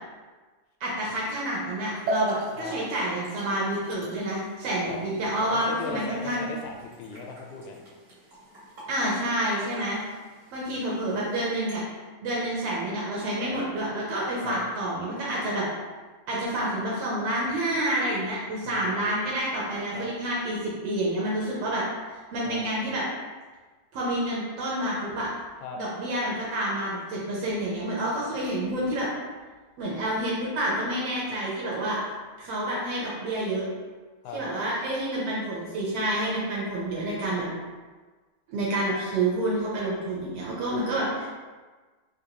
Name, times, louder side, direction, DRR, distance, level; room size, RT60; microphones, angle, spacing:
voice 1, 0.8-6.4 8.9-10.0 10.5-11.8 12.2-15.7 16.3-20.6 20.8-21.9 22.3-23.0 23.9-25.3 25.8-29.1 29.8-32.0 32.4-33.7 34.3-37.5 38.5-41.3, right 1 dB, 70° right, -5 dB, 1.6 m, -28 dB
sound 1, 1.9-11.8, right 1 dB, 40° right, 1.2 m, -39 dB
voice 2, 5.4-7.8 14.4-14.6 18.6-19.2 19.9-20.1 22.5-22.6 25.6-25.8 34.2-34.4, left 5 dB, 80° left, 2 dB, 1.9 m, -38 dB
5.1 x 2.7 x 2.8 m, 1.3 s
omnidirectional pair, 3.4 m